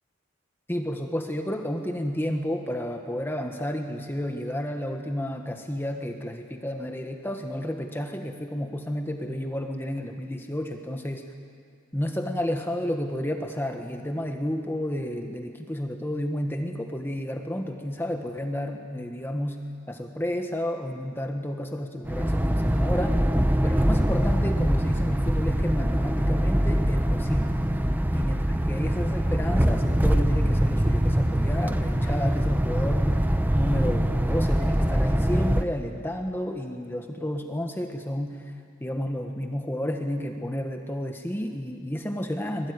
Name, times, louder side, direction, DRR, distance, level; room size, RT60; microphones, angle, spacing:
voice 1, 0.7-11.2 11.9-19.6 19.9-23.2 23.6-27.6 28.1-33.1 33.5-38.4 38.8-42.7, equal, 10° left, 4 dB, 1.3 m, -31 dB
sound 1, 22.0-35.6, equal, 10° right, 0.8 m, -23 dB
25.0 x 20.5 x 9.7 m, 2.2 s
head